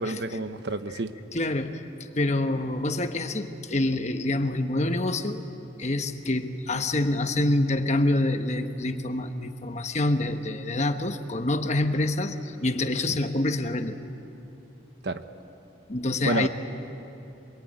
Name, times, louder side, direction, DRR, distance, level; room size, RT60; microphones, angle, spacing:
voice 1, 0.0-1.1 15.0-15.2 16.2-16.5, right 2 dB, 65° right, 9 dB, 1.1 m, -29 dB
voice 2, 1.3-1.9 2.2-5.4 5.8-14.0 15.9-16.5, left 2 dB, 40° left, 7 dB, 1.2 m, -26 dB
26.5 x 22.5 x 9.0 m, 2.9 s
head